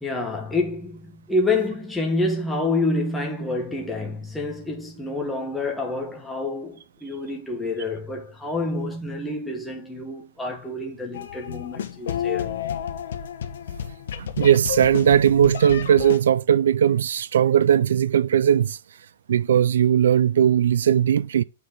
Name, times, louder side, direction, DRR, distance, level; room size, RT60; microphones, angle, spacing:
voice 1, 0.0-12.5, left 2 dB, 5° left, 1.2 m, -28 dB
sound 1, 11.1-16.2, left 9 dB, 75° left, 1.2 m, -31 dB
voice 2, 14.2-18.8 19.3-21.4, right 9 dB, 80° right, 0.4 m, -18 dB
8.6 x 4.5 x 3.7 m
hypercardioid pair, 160°, 0 cm